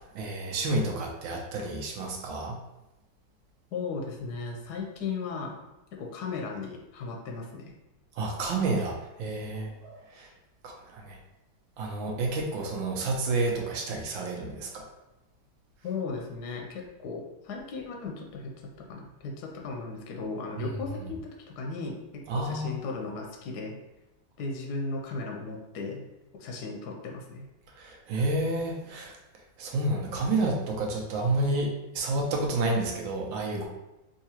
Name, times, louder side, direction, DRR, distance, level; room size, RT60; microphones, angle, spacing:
voice 1, 0.1-2.6 8.2-10.3 10.6-11.2 11.8-14.8 20.6-20.7 22.3-22.7 27.8-29.1 29.6-33.7, right 2 dB, 85° right, 0 dB, 1.4 m, -30 dB
voice 2, 3.7-5.6 5.9-7.7 15.8-18.5 18.8-23.8 24.4-26.0 26.3-27.5, left 4 dB, 70° left, 1 dB, 1.0 m, -36 dB
3.6 x 2.9 x 2.8 m, 0.96 s
omnidirectional pair, 2.1 m